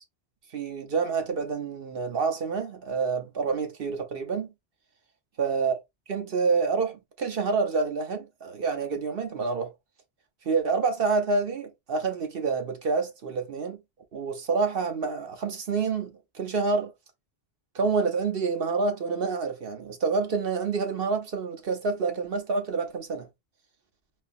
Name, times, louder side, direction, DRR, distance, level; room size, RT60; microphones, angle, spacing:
voice 1, 0.5-4.5 5.4-5.7 6.1-9.7 10.5-13.8 14.1-16.1 16.3-16.9 17.7-23.3, right 4 dB, 65° right, 1.1 m, -27 dB
3.8 x 2.9 x 2.6 m
omnidirectional pair, 1.1 m